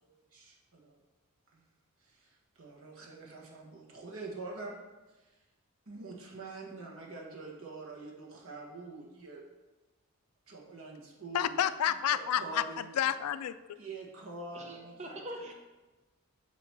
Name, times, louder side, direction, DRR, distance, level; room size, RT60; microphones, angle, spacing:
voice 1, 0.3-1.0 1.5-1.6 2.0-4.7 5.1-5.3 5.8-9.4 10.5-11.6 12.1-13.1 13.8-15.2, right 3 dB, 70° right, -2 dB, 1.4 m, -45 dB
voice 2, 11.3-13.8, left 10 dB, 85° left, 14 dB, 0.3 m, -30 dB
voice 3, 14.5-15.5, right 1 dB, 30° right, 2 dB, 0.8 m, -43 dB
7.5 x 3.0 x 5.9 m, 1.2 s
head